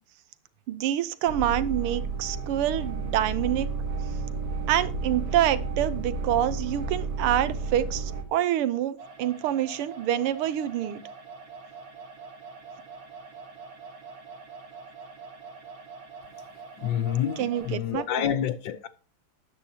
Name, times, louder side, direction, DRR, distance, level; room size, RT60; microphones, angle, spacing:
voice 1, 0.7-3.7 4.7-11.0 17.4-18.4, right 11 dB, 85° right, 1.7 m, -27 dB
sound 1, 1.3-8.2, right 4 dB, 45° right, 2.0 m, -32 dB
sound 2, 9.0-17.8, right 4 dB, 65° right, 2.8 m, -45 dB
voice 2, 16.8-18.9, left 9 dB, 70° left, 1.2 m, -28 dB
13.0 x 9.9 x 2.8 m
omnidirectional pair, 2.4 m